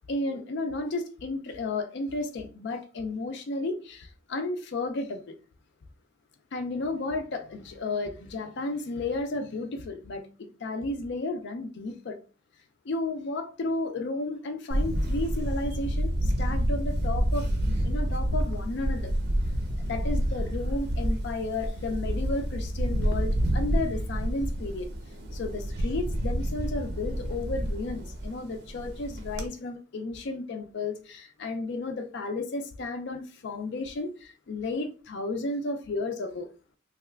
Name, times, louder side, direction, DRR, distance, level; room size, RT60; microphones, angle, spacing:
voice 1, 0.1-5.4 6.5-12.2 12.8-17.5 17.8-19.1 19.8-24.9 25.3-36.5, left 2 dB, 60° left, 0.4 m, -33 dB
Camera, 14.7-29.5, equal, 55° right, 0.6 m, -29 dB
2.8 x 2.3 x 3.2 m
head